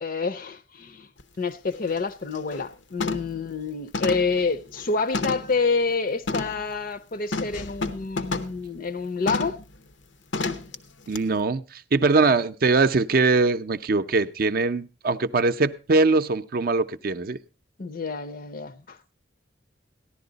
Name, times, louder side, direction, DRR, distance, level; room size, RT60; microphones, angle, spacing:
voice 1, 0.0-1.1 1.4-9.6 17.8-19.1, left 4 dB, 50° left, 0.6 m, -28 dB
sound 1, 1.2-1.3 1.7-2.0 2.4-2.7 3.0-3.4 3.9-5.6 6.3-6.6 7.3-8.6 9.3-9.6 10.3-10.8 11.1-11.2, left 3 dB, 80° left, 0.8 m, -30 dB
voice 2, 11.1-17.4, right 3 dB, 50° right, 0.5 m, -22 dB
14.5 x 11.0 x 3.9 m
head